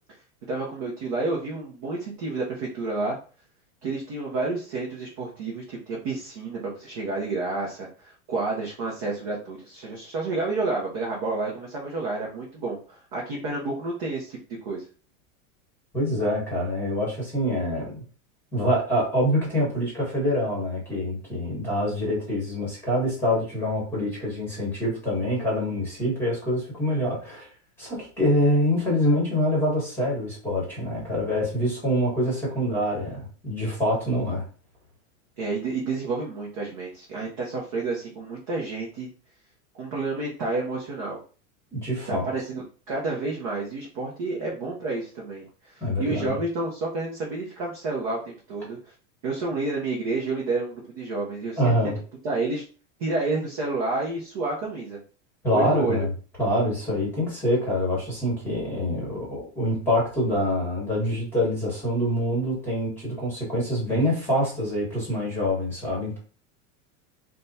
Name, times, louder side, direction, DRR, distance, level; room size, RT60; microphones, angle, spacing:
voice 1, 0.5-3.2 3.8-14.9 35.4-39.1 39.8-41.2 42.1-45.7 46.0-48.8 49.2-51.7 52.2-52.6 53.0-55.0 55.5-56.0, right 3 dB, 25° right, -4 dB, 0.4 m, -30 dB
voice 2, 15.9-18.0 18.5-27.5 27.8-34.4 41.7-42.3 45.8-46.4 51.6-51.9 55.4-56.1 56.4-66.2, equal, 5° left, -4 dB, 1.1 m, -25 dB
3.4 x 2.1 x 3.9 m, 0.39 s
supercardioid pair, 180°, 42 cm